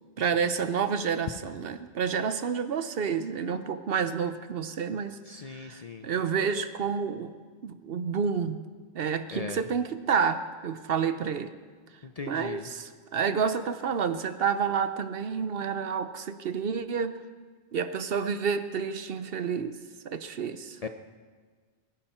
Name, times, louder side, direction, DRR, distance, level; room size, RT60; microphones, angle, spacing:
voice 1, 0.2-5.2 5.5-7.3 7.6-8.7 8.9-11.5 12.3-17.2 17.7-19.8 20.0-20.9, right 6 dB, 60° right, 11 dB, 0.9 m, -29 dB
voice 2, 5.3-6.1 9.3-9.6 12.0-12.7 20.8-20.9, left 4 dB, 45° left, 7 dB, 0.5 m, -38 dB
23.0 x 10.5 x 4.4 m, 1.5 s
omnidirectional pair, 1.2 m